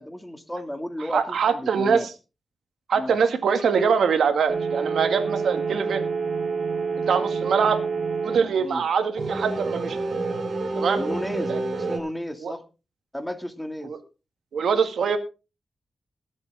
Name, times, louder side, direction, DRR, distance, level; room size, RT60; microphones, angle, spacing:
voice 1, 0.0-2.1 3.0-3.2 8.6-8.8 10.9-12.6 13.1-13.9, left 1 dB, 5° left, 7 dB, 2.3 m, -33 dB
voice 2, 1.1-2.1 2.9-6.1 7.1-7.8 8.2-10.0 10.8-11.0 11.5-11.6 12.4-12.5 13.8-14.0 14.5-15.2, right 6 dB, 85° right, 8 dB, 2.0 m, -23 dB
sound 1, 4.5-8.9 9.2-12.0, right 4 dB, 60° right, 2.7 m, -28 dB
20.5 x 7.8 x 3.6 m, 0.30 s
cardioid pair, 70°, 0 cm